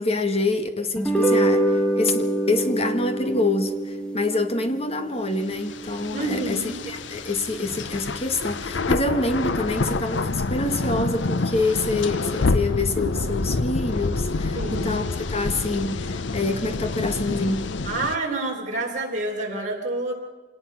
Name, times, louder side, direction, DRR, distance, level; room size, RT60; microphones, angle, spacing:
voice 1, 0.0-17.7, left 2 dB, 30° left, 1.6 m, -26 dB
sound 1, 1.0-7.5, right 1 dB, 5° left, 1.6 m, -26 dB
sound 2, 5.5-18.2, left 3 dB, 70° left, 0.7 m, -27 dB
voice 2, 6.1-6.8 14.5-15.0 17.8-20.1, right 2 dB, 40° right, 4.5 m, -28 dB
26.0 x 18.5 x 5.8 m
head